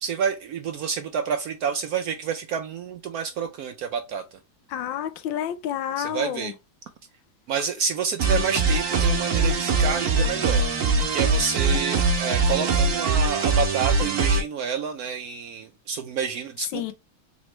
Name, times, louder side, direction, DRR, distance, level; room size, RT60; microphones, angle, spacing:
voice 1, 0.0-4.2 6.0-6.5 7.5-16.9, right 7 dB, 75° right, 0.8 m, -29 dB
voice 2, 4.7-6.5 16.7-16.9, left 10 dB, 85° left, 1.3 m, -29 dB
sound 1, 8.2-14.4, right 3 dB, 50° right, 1.2 m, -22 dB
4.1 x 3.0 x 3.1 m
omnidirectional pair, 2.0 m